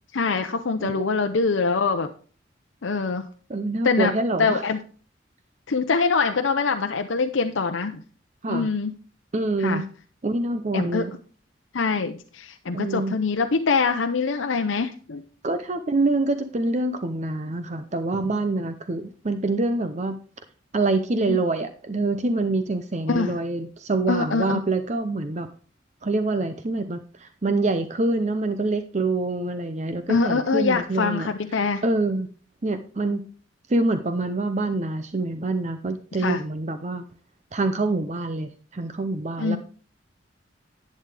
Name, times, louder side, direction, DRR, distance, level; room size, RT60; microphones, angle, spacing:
voice 1, 0.1-2.1 2.8-3.2 3.8-4.1 4.4-4.8 5.7-8.0 8.5-8.9 9.6-9.8 10.7-11.0 11.7-15.2 21.3-21.4 23.1-23.3 24.1-24.6 30.1-31.8 36.2-36.4 39.4-39.6, left 4 dB, 80° left, 6 dB, 0.7 m, -24 dB
voice 2, 3.5-4.6 8.4-8.7 9.3-9.8 10.2-11.1 12.7-13.1 15.4-20.2 20.7-25.5 26.0-31.3 31.8-32.3 32.6-33.3 33.7-37.0 37.5-39.6, right 2 dB, 35° right, 9 dB, 0.6 m, -26 dB
11.0 x 8.7 x 3.4 m, 0.40 s
head